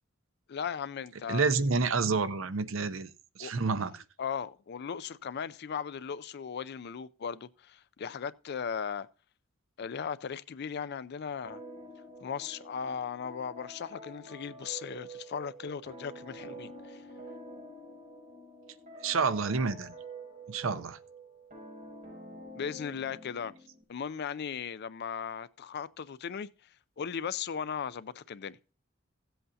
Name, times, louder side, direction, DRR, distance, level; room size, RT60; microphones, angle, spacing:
voice 1, 0.5-1.4 3.4-3.5 4.2-9.1 9.8-11.6 12.2-17.0 22.6-23.5 23.9-28.6, left 7 dB, 55° left, 0.4 m, -37 dB
voice 2, 1.3-3.1 3.4-4.0 19.0-19.9 20.5-21.0, right 4 dB, 75° right, 0.7 m, -29 dB
sound 1, 11.4-23.8, right 1 dB, 40° right, 6.3 m, -48 dB
16.0 x 7.9 x 2.7 m
head